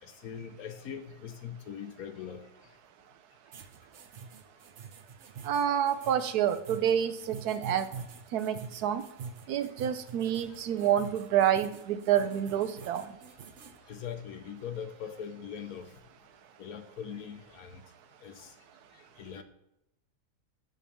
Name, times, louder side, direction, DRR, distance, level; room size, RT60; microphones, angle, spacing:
voice 1, 0.0-2.4 10.5-10.9 13.8-16.0 16.6-17.9 18.2-18.5 18.9-19.4, left 8 dB, 70° left, 8 dB, 1.1 m, -42 dB
sound 1, 3.5-13.8, right 5 dB, 55° right, 0.9 m, -45 dB
voice 2, 5.4-7.9 8.3-9.0 9.5-13.1, right 10 dB, 80° right, 11 dB, 1.1 m, -28 dB
10.0 x 3.5 x 7.0 m, 0.83 s
omnidirectional pair, 1.7 m